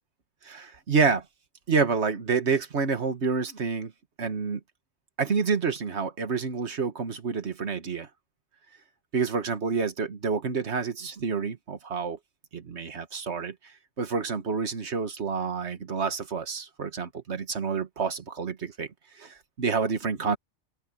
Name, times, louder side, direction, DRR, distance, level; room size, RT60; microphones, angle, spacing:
voice 1, 0.5-1.2 1.7-3.9 4.2-4.6 5.2-8.1 9.1-12.2 12.5-13.5 14.0-18.9 19.2-20.4, right 5 dB, 75° right, 1.8 m, -28 dB
open air
omnidirectional pair, 1.2 m